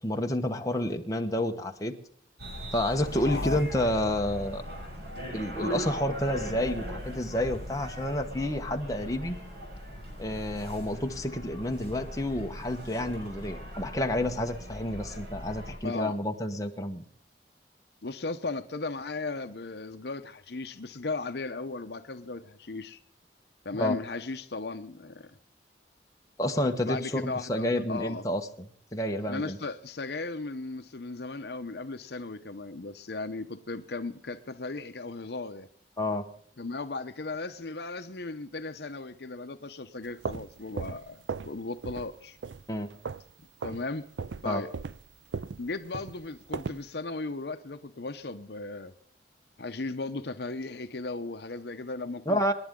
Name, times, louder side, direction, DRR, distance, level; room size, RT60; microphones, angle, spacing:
voice 1, 0.0-1.9 2.7-4.6 5.3-9.4 10.2-17.0 23.7-23.9 26.4-28.5 28.9-29.6 36.0-36.3 42.7-42.9 44.4-44.6 52.3-52.5, left 1 dB, 20° left, 1.2 m, -29 dB
sound 1, 2.4-15.8, equal, 65° right, 6.8 m, -39 dB
voice 2, 3.3-3.6 15.8-16.2 18.0-23.0 23.6-25.4 26.8-28.2 29.3-35.7 36.6-42.4 43.6-44.0 44.4-44.7 45.6-48.9 49.6-52.5, left 3 dB, 65° left, 0.8 m, -36 dB
sound 2, 40.0-41.6 41.8-42.1 42.4-43.3 43.6-43.8 44.2-46.9, right 5 dB, 85° right, 0.5 m, -37 dB
27.0 x 10.5 x 3.8 m
head